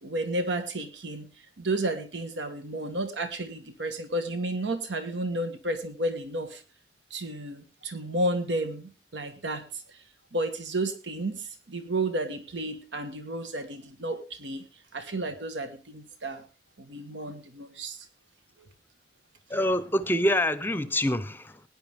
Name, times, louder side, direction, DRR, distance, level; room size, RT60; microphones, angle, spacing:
voice 1, 0.0-6.6 7.1-10.0 10.3-14.6 14.9-16.5 16.8-18.1 18.6-18.7, right 1 dB, 85° right, 1.4 m, -32 dB
voice 2, 19.5-21.6, left 1 dB, 10° left, 0.6 m, -26 dB
17.5 x 10.0 x 3.5 m
head